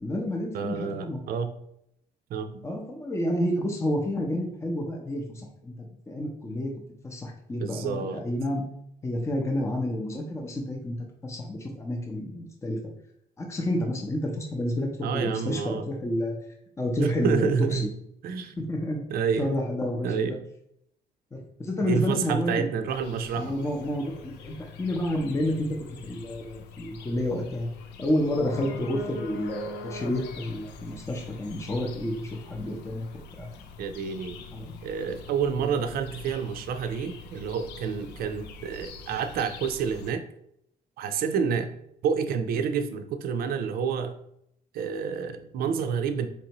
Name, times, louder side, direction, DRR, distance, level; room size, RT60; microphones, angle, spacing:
voice 1, 0.0-1.2 2.6-6.7 7.0-8.6 9.0-11.0 11.2-12.8 13.4-16.4 16.8-17.8 18.6-19.0 19.4-20.4 21.6-22.7 23.4-25.7 26.0-27.7 28.0-33.1 33.3-33.5 34.5-34.7, left 1 dB, 15° left, 0 dB, 0.7 m, -29 dB
voice 2, 0.5-1.5 2.3-2.6 7.6-8.3 15.0-15.8 17.0-17.9 18.2-18.5 19.1-19.5 20.0-20.4 21.8-23.5 33.8-34.4 34.8-40.2 41.0-41.7 42.0-44.2 44.7-46.3, right 6 dB, 60° right, 8 dB, 0.5 m, -29 dB
sound 1, 22.9-40.1, left 4 dB, 85° left, 0.5 m, -44 dB
4.3 x 2.7 x 2.9 m, 0.73 s
cardioid pair, 110°, 17 cm